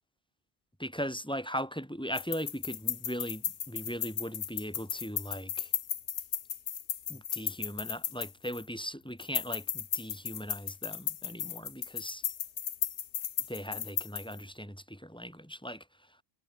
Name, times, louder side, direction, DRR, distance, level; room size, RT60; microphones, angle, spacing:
voice 1, 0.8-5.7 7.1-12.2 13.5-16.2, equal, 5° left, 7.3 m, -39 dB
sound 1, 2.1-8.8 9.2-14.4, left 9 dB, 85° left, 1.3 m, -35 dB
omnidirectional pair, 1.1 m